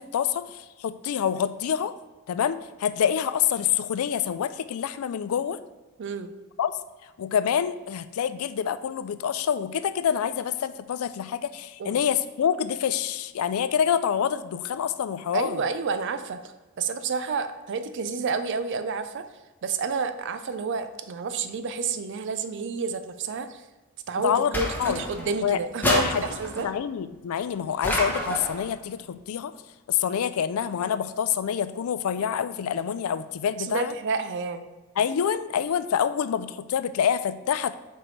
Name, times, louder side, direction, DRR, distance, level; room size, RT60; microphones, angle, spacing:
voice 1, 0.0-1.9 2.3-5.6 6.6-6.7 7.2-15.6 24.2-25.0 25.4-25.6 25.8-26.2 26.6-29.5 29.9-33.9 35.0-37.7, left 8 dB, 90° left, 13 dB, 0.4 m, -27 dB
voice 2, 6.0-6.3 11.8-12.0 15.3-19.3 19.6-23.6 24.1-26.7 33.6-34.6, right 4 dB, 60° right, 10 dB, 0.4 m, -30 dB
sound 1, 24.5-25.3 25.8-26.7 27.8-28.6, equal, 10° left, 1.0 m, -28 dB
7.7 x 4.6 x 3.2 m, 1.2 s
head